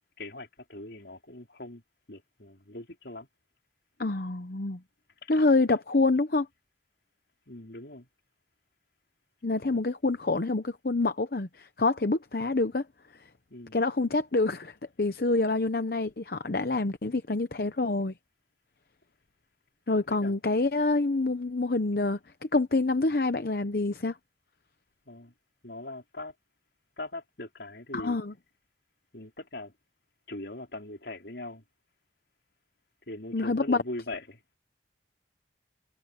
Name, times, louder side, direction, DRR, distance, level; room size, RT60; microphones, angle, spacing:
voice 1, 0.2-1.8 2.1-3.3 5.2-5.4 7.5-8.1 9.6-9.8 13.5-13.8 20.1-20.3 25.0-25.3 25.6-26.3 27.0-28.2 29.1-29.7 30.3-31.6 33.1-34.4, left 2 dB, 75° left, 4.6 m, -41 dB
voice 2, 4.0-4.8 5.3-6.5 9.4-12.8 13.7-18.1 19.9-24.2 27.9-28.3 33.3-33.8, left 3 dB, 55° left, 0.8 m, -27 dB
head